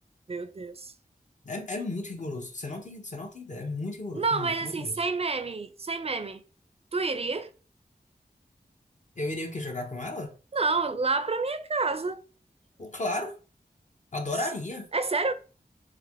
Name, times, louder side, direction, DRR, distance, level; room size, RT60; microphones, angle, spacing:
voice 1, 0.3-0.9 4.1-6.4 6.9-7.5 10.5-12.2 14.9-15.3, right 3 dB, 40° right, 0.4 m, -29 dB
voice 2, 1.4-5.0 9.2-10.3 12.8-13.3 14.1-14.9, left 2 dB, 50° left, 0.7 m, -34 dB
3.3 x 2.2 x 3.3 m
wide cardioid pair, 65°, 16 cm